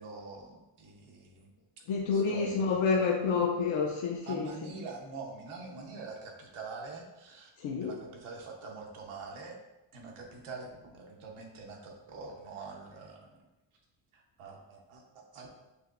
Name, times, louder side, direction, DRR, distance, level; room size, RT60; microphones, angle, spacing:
voice 1, 0.0-1.5 2.1-2.8 4.2-7.5 7.8-9.6 9.9-13.3 14.1-15.0 15.3-15.6, right 4 dB, 90° right, 0 dB, 1.0 m, -45 dB
voice 2, 1.9-4.5 7.6-7.9, left 5 dB, 70° left, -1 dB, 0.6 m, -28 dB
6.3 x 2.9 x 2.5 m, 0.99 s
cardioid pair, 115°, 49 cm